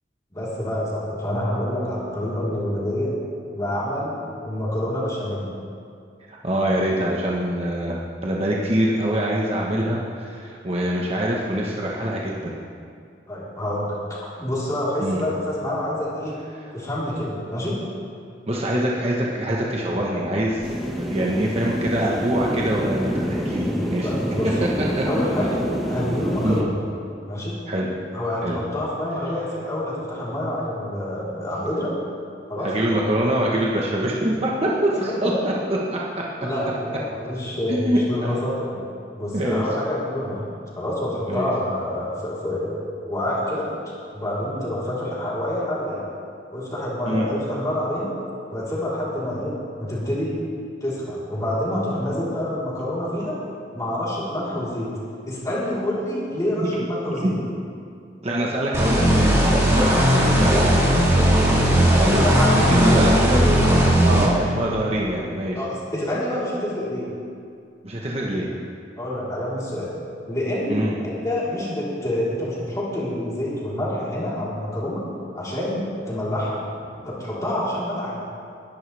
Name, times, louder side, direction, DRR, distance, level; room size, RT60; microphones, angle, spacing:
voice 1, 0.3-3.1 3.5-5.5 13.3-16.4 16.7-17.8 24.0-24.6 25.1-25.6 25.9-26.8 27.3-27.6 28.1-31.9 32.5-32.7 34.9-35.3 36.4-38.8 39.1-40.5 40.7-43.7 44.1-46.1 46.5-48.2 48.5-50.4 50.8-53.4 53.7-55.0 55.2-57.4 62.2-62.9 63.4-63.6 65.6-67.1 69.0-69.9 70.3-75.1 75.3-76.7 77.0-78.2, left 1 dB, 20° left, -8 dB, 4.0 m, -27 dB
voice 2, 6.3-12.6 15.0-15.2 18.5-24.2 25.0-25.1 25.4-25.5 26.4-26.6 27.7-27.9 28.4-28.6 32.6-35.3 35.7-36.0 37.7-38.4 39.3-39.6 41.3-41.5 47.1-47.3 56.7-56.8 57.2-57.4 58.2-62.2 62.5-63.7 64.0-65.6 67.8-68.5 70.7-70.9, right 1 dB, 35° right, -3 dB, 1.2 m, -24 dB
sound 1, 20.6-26.6, equal, ahead, 1.4 m, -27 dB
sound 2, 58.7-64.3, equal, 15° right, 2.4 m, -17 dB
20.5 x 11.5 x 3.5 m, 2.3 s
head